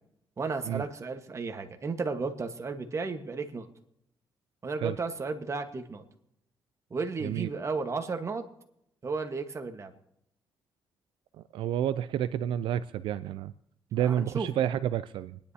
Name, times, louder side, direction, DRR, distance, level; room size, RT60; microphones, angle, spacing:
voice 1, 0.4-3.7 4.6-6.0 6.9-8.4 9.0-9.9 14.0-14.5, right 4 dB, 35° right, 6 dB, 1.3 m, -33 dB
voice 2, 11.4-13.5 13.9-15.4, right 10 dB, 80° right, 13 dB, 0.4 m, -30 dB
28.0 x 10.0 x 2.8 m, 0.79 s
cardioid pair, 95°, 8 cm